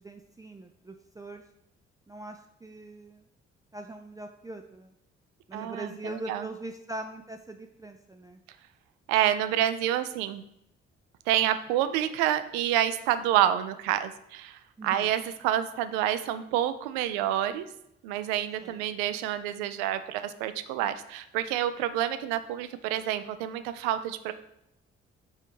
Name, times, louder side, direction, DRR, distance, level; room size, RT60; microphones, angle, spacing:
voice 1, 0.0-1.4 2.1-3.3 3.7-4.9 5.5-8.4 14.8-15.1 18.6-18.8, right 2 dB, 10° right, 4 dB, 0.5 m, -41 dB
voice 2, 5.5-6.4 9.1-10.4 11.3-17.6 18.0-24.3, right 11 dB, 65° right, 11 dB, 0.6 m, -28 dB
8.9 x 3.3 x 4.5 m, 0.78 s
figure-of-eight pair, 40°, 34 cm